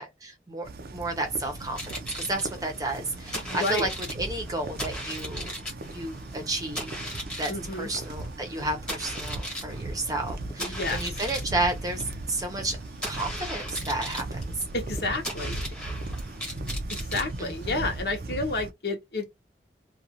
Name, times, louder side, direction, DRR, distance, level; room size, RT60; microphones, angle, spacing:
voice 1, 0.0-3.9 4.2-5.5 5.9-6.9 7.4-12.8 13.1-14.5 17.4-17.8, right 2 dB, 20° right, 0.7 m, -32 dB
sound 1, 0.6-18.7, right 2 dB, 55° right, 0.4 m, -37 dB
sound 2, 1.6-18.0, equal, 5° left, 1.1 m, -38 dB
voice 2, 3.3-3.9 7.5-7.9 10.6-11.0 14.7-15.6 16.9-19.3, left 2 dB, 65° left, 0.9 m, -30 dB
2.5 x 2.3 x 2.8 m
head